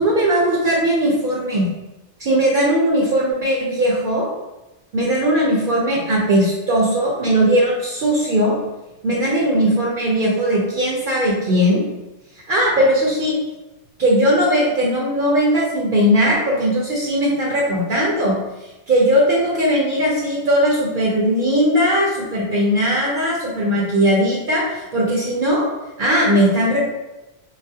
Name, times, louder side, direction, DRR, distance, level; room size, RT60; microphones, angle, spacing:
voice 1, 0.0-1.7 2.2-4.3 4.9-8.6 9.0-11.8 12.5-13.4 14.0-18.4 18.9-25.7 26.0-26.8, equal, 55° right, -4 dB, 0.7 m, -18 dB
3.9 x 2.3 x 2.6 m, 1.0 s
omnidirectional pair, 1.1 m